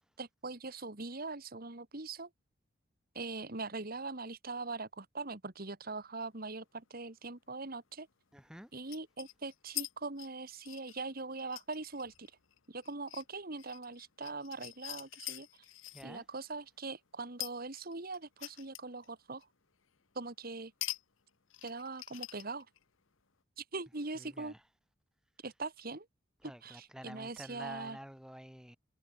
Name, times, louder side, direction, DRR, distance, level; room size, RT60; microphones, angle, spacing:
voice 1, 0.2-2.3 3.2-8.1 8.7-12.3 12.7-15.5 16.0-19.5 20.2-20.7 21.6-22.7 23.6-24.5 25.4-26.1 26.6-28.0, right 3 dB, 45° right, 2.0 m, -42 dB
sound 1, 6.8-6.9 8.9-9.9 10.2-16.1 17.4-19.1 19.4-19.5 20.8-21.0 21.3-22.8, left 16 dB, 75° left, 1.0 m, -44 dB
voice 2, 8.3-8.7 15.9-16.2 24.1-24.6 26.4-28.8, equal, 5° right, 2.3 m, -49 dB
head